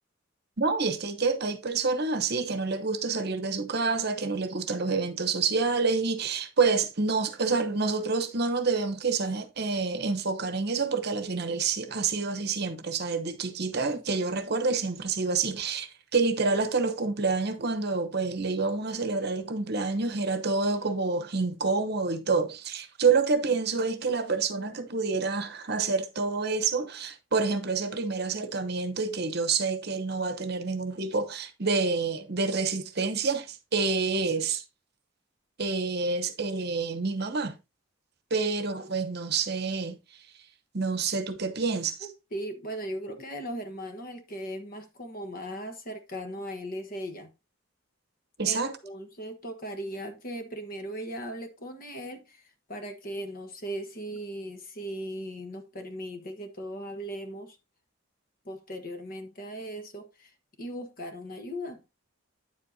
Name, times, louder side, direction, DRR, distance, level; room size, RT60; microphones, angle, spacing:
voice 1, 0.6-34.6 35.6-37.5 38.3-40.0 40.7-42.1 48.4-48.7, right 4 dB, 50° right, 1.0 m, -28 dB
voice 2, 42.0-47.3 48.5-57.6 58.4-61.8, equal, 45° left, 1.3 m, -38 dB
9.5 x 7.6 x 2.7 m
head